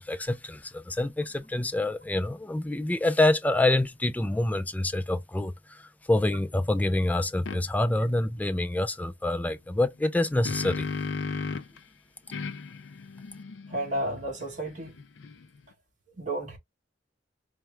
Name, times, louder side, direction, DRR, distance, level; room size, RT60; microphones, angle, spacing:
voice 1, 0.0-10.9, left 1 dB, 10° left, 0.3 m, -27 dB
sound 1, 7.5-7.6 10.0-11.8 12.3-15.6, left 4 dB, 75° left, 0.5 m, -36 dB
voice 2, 13.7-15.0 16.2-16.6, right 1 dB, 45° right, 1.6 m, -32 dB
4.4 x 2.1 x 3.5 m
head